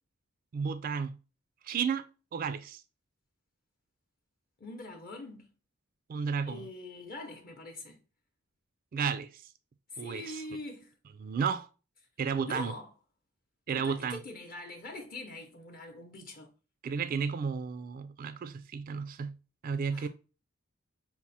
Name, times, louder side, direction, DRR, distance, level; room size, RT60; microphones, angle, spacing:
voice 1, 0.5-1.2 1.6-2.1 2.3-2.8 6.1-6.7 8.9-9.4 10.0-10.4 11.2-11.7 12.2-12.7 13.7-14.2 16.8-19.3 19.6-20.1, right 6 dB, 45° right, 0.3 m, -32 dB
voice 2, 4.6-5.5 6.4-8.0 9.9-10.9 12.5-12.9 13.7-16.5 19.9-20.1, left 2 dB, 45° left, 0.7 m, -43 dB
6.0 x 2.0 x 4.1 m
head